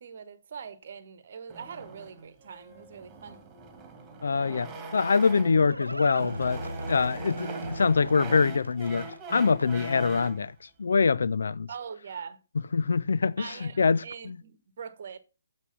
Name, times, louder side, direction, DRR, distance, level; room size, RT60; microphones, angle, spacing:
voice 1, 0.0-3.4 11.7-12.4 13.4-15.2, right 6 dB, 45° right, 1.1 m, -42 dB
sound 1, 1.5-5.7 6.1-10.4, right 3 dB, 15° right, 2.1 m, -41 dB
voice 2, 4.2-6.6 6.9-10.5 10.8-11.7 12.7-14.4, left 5 dB, 60° left, 0.4 m, -24 dB
Livestock farm animals working animals, 5.3-10.0, right 1 dB, 85° right, 0.5 m, -38 dB
8.3 x 7.0 x 5.7 m
figure-of-eight pair, 135°, 0 cm